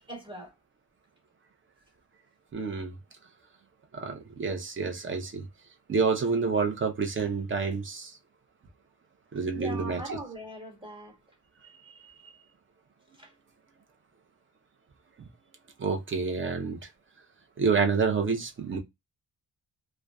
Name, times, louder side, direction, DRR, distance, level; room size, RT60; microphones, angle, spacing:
voice 1, 0.1-0.5 9.5-11.2 13.2-13.3, right 1 dB, 10° right, 1.4 m, -41 dB
voice 2, 2.5-2.9 3.9-5.4 5.9-8.1 9.3-10.2 15.2-15.3 15.8-16.8 17.6-18.8, right 5 dB, 30° right, 0.6 m, -28 dB
2.5 x 2.2 x 2.2 m
cardioid pair, 90°, 43 cm